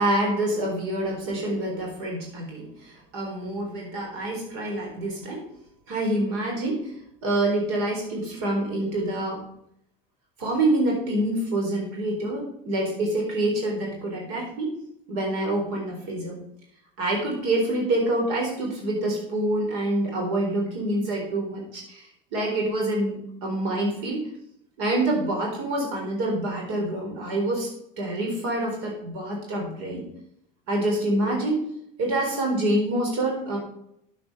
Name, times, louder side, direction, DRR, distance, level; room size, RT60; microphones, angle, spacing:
voice 1, 0.0-5.4 5.9-6.9 7.2-9.4 10.4-14.7 15.1-16.4 17.0-24.2 24.8-27.7 28.0-30.0 30.7-31.6 32.0-33.6, right 1 dB, 85° right, -1 dB, 4.2 m, -26 dB
9.3 x 8.4 x 5.4 m, 0.74 s
supercardioid pair, 105°, 19 cm